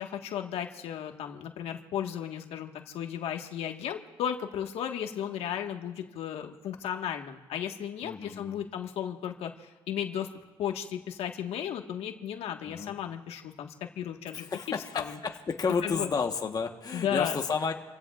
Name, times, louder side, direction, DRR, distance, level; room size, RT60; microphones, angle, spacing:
voice 1, 0.0-10.3 10.6-14.5 14.9-15.1 15.8-16.1 16.9-17.3, left 9 dB, 70° left, 4 dB, 1.6 m, -35 dB
voice 2, 8.0-8.6 12.6-12.9 14.3-17.7, left 5 dB, 35° left, 4 dB, 1.2 m, -31 dB
30.0 x 16.0 x 2.5 m, 1.3 s
supercardioid pair, 75°, 10 cm